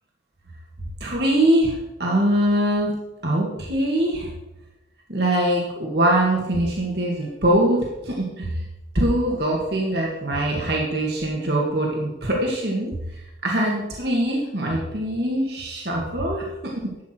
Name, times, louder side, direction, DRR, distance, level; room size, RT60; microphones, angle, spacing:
voice 1, 1.0-2.9 3.2-4.3 5.1-8.6 8.9-16.7, right 1 dB, 55° right, -2 dB, 2.0 m, -23 dB
12.0 x 8.5 x 4.5 m, 0.96 s
head